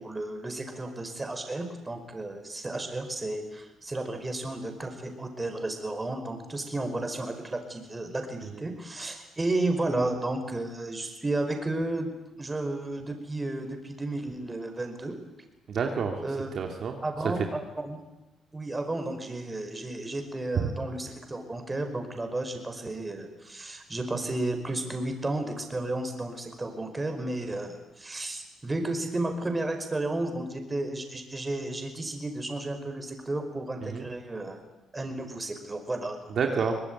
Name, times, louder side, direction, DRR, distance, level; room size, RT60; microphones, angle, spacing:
voice 1, 0.0-12.1 12.4-15.1 16.2-16.5 17.0-18.0 18.5-34.6 34.9-36.2, right 2 dB, 20° right, 6 dB, 5.0 m, -33 dB
voice 2, 15.7-16.2 16.5-17.0 17.4-17.5 20.6-20.7 33.8-34.1 36.3-36.8, right 6 dB, 60° right, 3 dB, 2.6 m, -29 dB
23.5 x 19.5 x 9.5 m, 1.1 s
cardioid pair, 90°, 0 cm